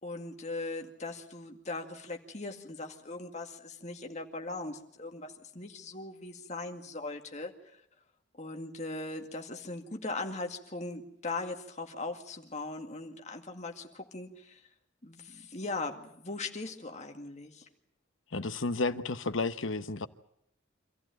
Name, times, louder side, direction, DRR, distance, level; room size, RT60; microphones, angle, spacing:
voice 1, 0.0-7.8 8.4-14.6 15.0-17.7, left 2 dB, 35° left, 2.2 m, -39 dB
voice 2, 18.3-20.1, left 3 dB, 80° left, 1.0 m, -32 dB
26.0 x 15.0 x 9.3 m
head